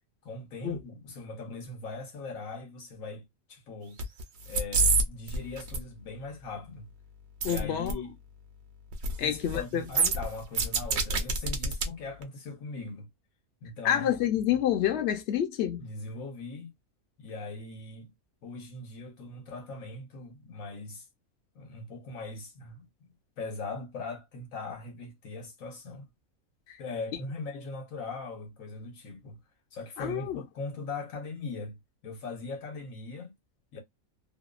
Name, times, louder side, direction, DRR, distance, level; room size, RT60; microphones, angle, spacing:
voice 1, 0.2-4.0 4.5-6.9 7.4-8.1 9.2-13.1 13.6-14.1 15.8-16.7 17.2-18.1 18.4-21.0 21.5-22.9 23.4-26.1 26.8-29.4 29.7-33.3 33.7-33.8, left 3 dB, 80° left, 1.3 m, -40 dB
sound 1, 4.0-4.2 4.5-5.0 5.3-5.8 7.4-7.6 7.8-7.9 8.9-9.2 9.4-9.6 9.9-11.8 12.2-12.3, right 4 dB, 60° right, 0.8 m, -26 dB
voice 2, 7.4-7.9 9.2-10.1 13.8-15.8 26.7-26.8 30.0-30.4, left 10 dB, 60° left, 0.8 m, -28 dB
2.8 x 2.2 x 2.3 m
omnidirectional pair, 1.4 m